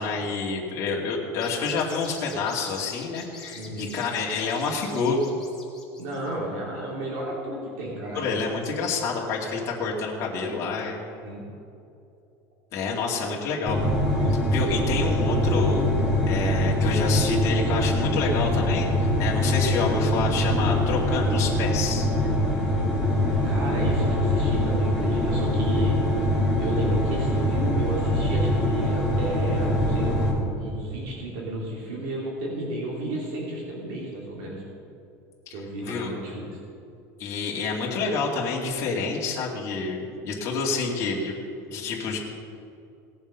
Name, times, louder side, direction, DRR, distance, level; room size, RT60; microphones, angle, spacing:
voice 1, 0.0-5.2 8.1-11.0 12.7-13.8 14.3-15.9 16.3-22.1 35.5-35.6 35.8-36.1 37.2-41.4 41.7-42.2, left 4 dB, 40° left, -3 dB, 2.3 m, -28 dB
sound 1, 1.3-6.3, left 3 dB, 5° left, 2.4 m, -45 dB
voice 2, 3.5-3.9 6.0-8.7 9.0-9.1 11.1-11.4 13.1-13.3 23.4-26.3 26.6-34.6 35.5-36.6, right 1 dB, 70° right, -3 dB, 3.0 m, -33 dB
sound 2, 13.6-30.3, left 1 dB, 10° right, 2.9 m, -23 dB
18.5 x 7.1 x 5.6 m, 2.6 s
cardioid pair, 155°, 8 cm